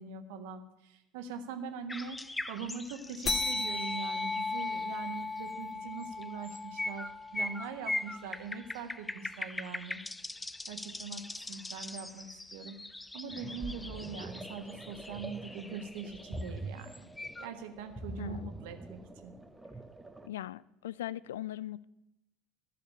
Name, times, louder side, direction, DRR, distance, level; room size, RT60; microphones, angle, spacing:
voice 1, 0.0-2.2 2.5-10.0 10.7-11.2 11.5-12.7 13.1-17.0 17.4-19.3, right 5 dB, 60° right, 1.5 m, -42 dB
sound 1, 1.9-5.4 6.0-17.5, left 2 dB, 10° left, 0.6 m, -42 dB
sound 2, 3.3-8.2, left 3 dB, 35° left, 1.6 m, -36 dB
sound 3, 13.3-20.3, right 1 dB, 10° right, 1.1 m, -45 dB
voice 2, 18.2-18.5 20.2-21.8, left 13 dB, 70° left, 0.4 m, -40 dB
12.0 x 6.9 x 9.9 m
figure-of-eight pair, 65°, 0 cm